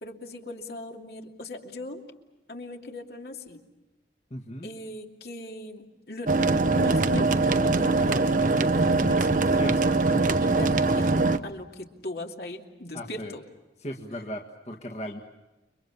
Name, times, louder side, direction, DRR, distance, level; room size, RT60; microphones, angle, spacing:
voice 1, 0.0-2.0 2.5-3.6 4.6-11.1 11.4-13.4, left 2 dB, 60° left, 2 dB, 2.8 m, -38 dB
voice 2, 4.3-4.7 9.5-10.0 12.9-13.3 13.8-15.2, equal, 40° left, 2 dB, 1.8 m, -37 dB
sound 1, 6.3-11.4, right 3 dB, 45° right, 1.0 m, -22 dB
30.0 x 24.0 x 7.2 m, 1.0 s
head